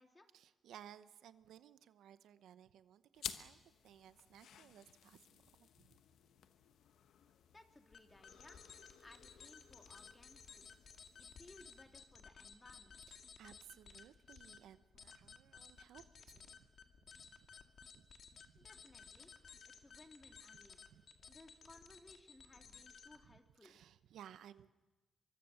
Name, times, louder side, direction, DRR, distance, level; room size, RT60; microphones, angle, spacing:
voice 1, 0.3-6.0 13.1-16.7 17.2-17.5 17.9-18.1 18.3-18.7 20.9-21.0 23.2-24.7, right 10 dB, 85° right, 13 dB, 0.8 m, -60 dB
sound 1, 3.1-12.1, left 9 dB, 85° left, 1.1 m, -54 dB
voice 2, 7.3-8.6 9.0-10.7 11.2-13.0 18.5-19.4 19.7-20.8 21.3-23.8, left 2 dB, 20° left, 4 dB, 2.7 m, -62 dB
sound 2, 7.9-23.4, left 6 dB, 65° left, 1.9 m, -58 dB
24.5 x 23.5 x 6.5 m, 1.1 s
cardioid pair, 70°, 0 cm